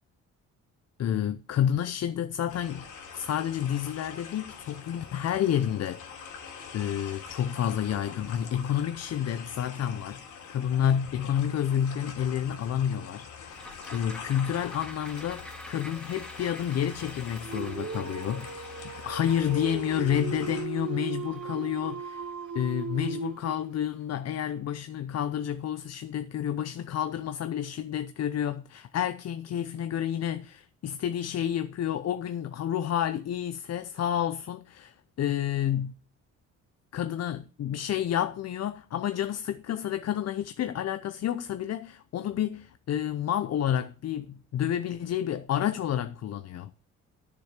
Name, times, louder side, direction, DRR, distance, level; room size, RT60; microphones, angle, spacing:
voice 1, 1.0-2.8 3.1-6.3 6.7-10.2 10.5-22.3 22.5-35.9 36.9-46.7, left 10 dB, 55° left, 0.7 m, -30 dB
sound 1, 2.5-20.7, left 6 dB, 85° left, 3.1 m, -45 dB
sound 2, 13.5-24.0 24.4-24.5, equal, 5° left, 2.2 m, -48 dB
Dog, 17.4-23.7, right 6 dB, 50° right, 2.0 m, -37 dB
10.0 x 6.9 x 6.6 m
cardioid pair, 90°, 30 cm